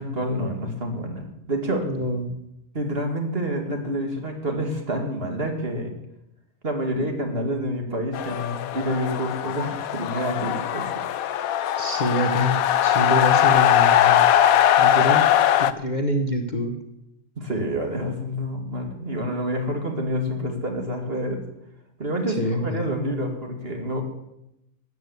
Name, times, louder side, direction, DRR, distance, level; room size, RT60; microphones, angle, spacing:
voice 1, 0.0-1.9 2.7-6.0 6.6-10.9 17.4-21.4 22.0-24.0, equal, 45° right, 3 dB, 2.5 m, -28 dB
voice 2, 1.8-2.4 11.8-14.3 14.8-15.3 15.6-16.8 22.3-23.3, left 1 dB, 35° left, 4 dB, 1.2 m, -26 dB
sound 1, 8.1-15.7, left 11 dB, 80° left, 1.1 m, -20 dB
13.0 x 9.1 x 8.2 m, 0.86 s
omnidirectional pair, 1.5 m